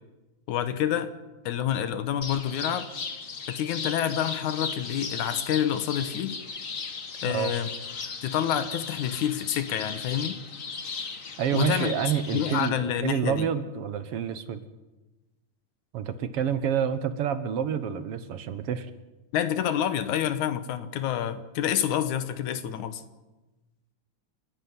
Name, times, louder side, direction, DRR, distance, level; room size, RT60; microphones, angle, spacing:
voice 1, 0.5-1.1 1.5-2.9 3.5-6.4 7.2-7.7 8.2-10.4 11.5-12.0 12.3-13.5 19.3-23.0, left 10 dB, 85° left, 11 dB, 2.6 m, -28 dB
sound 1, 2.2-12.7, left 5 dB, 40° left, 1.3 m, -37 dB
voice 2, 11.4-14.6 15.9-18.9, right 8 dB, 60° right, 11 dB, 1.8 m, -28 dB
29.5 x 11.5 x 9.6 m, 1.1 s
omnidirectional pair, 3.4 m